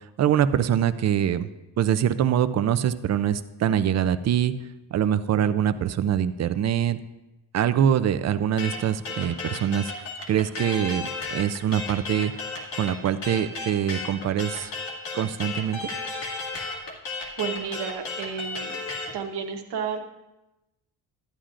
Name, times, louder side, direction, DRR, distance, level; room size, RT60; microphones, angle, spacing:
voice 1, 0.2-1.5 1.8-4.5 4.9-7.0 7.5-9.9 10.3-12.3 12.7-14.7 15.1-15.9, right 9 dB, 45° right, 14 dB, 0.4 m, -24 dB
sound 1, 8.6-19.1, left 3 dB, 90° left, 2.0 m, -33 dB
voice 2, 17.4-18.8 19.1-20.0, right 7 dB, 80° right, 3 dB, 1.2 m, -31 dB
12.5 x 10.0 x 2.5 m, 1.0 s
cardioid pair, 145°, 40 cm